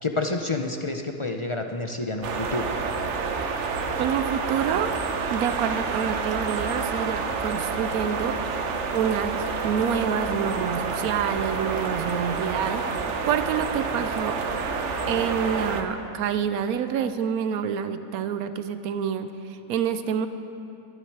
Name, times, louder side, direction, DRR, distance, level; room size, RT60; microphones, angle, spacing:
voice 1, 0.0-2.7, left 2 dB, 40° left, 4 dB, 0.4 m, -29 dB
sound 1, 2.2-15.8, right 4 dB, 55° right, 1.2 m, -29 dB
voice 2, 4.0-5.0 5.3-8.6 8.9-14.4 15.1-20.3, right 8 dB, 90° right, 10 dB, 1.1 m, -27 dB
20.5 x 11.5 x 4.7 m, 2.8 s
omnidirectional pair, 1.5 m